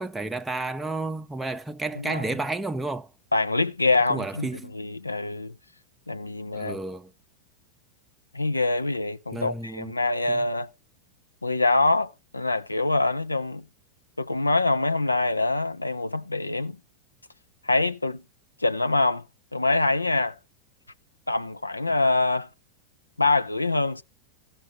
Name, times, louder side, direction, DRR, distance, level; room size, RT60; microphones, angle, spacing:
voice 1, 0.0-3.1 4.1-4.7 6.5-7.1 9.3-9.9 10.3-10.4, right 2 dB, 5° right, 0.5 m, -31 dB
voice 2, 3.3-5.5 6.1-6.8 8.3-10.7 11.4-13.6 14.2-16.8 17.6-18.2 18.6-19.2 19.5-20.4 21.3-22.5 23.2-24.0, left 2 dB, 80° left, 0.7 m, -25 dB
15.5 x 5.6 x 5.1 m
figure-of-eight pair, 90°, 0 cm